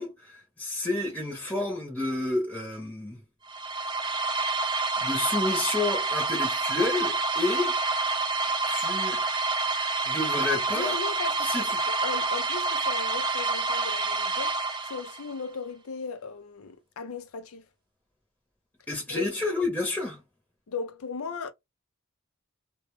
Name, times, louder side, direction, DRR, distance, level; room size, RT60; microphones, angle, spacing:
voice 1, 0.0-3.2 5.0-7.8 8.7-9.2 10.1-11.0 11.4-11.8 18.9-20.2, left 2 dB, 10° left, 0.8 m, -30 dB
sound 1, 3.5-15.3, right 3 dB, 20° right, 0.4 m, -28 dB
voice 2, 10.7-14.6 14.9-17.6 19.1-19.3 20.7-21.5, left 5 dB, 75° left, 0.5 m, -37 dB
2.2 x 2.2 x 3.1 m
head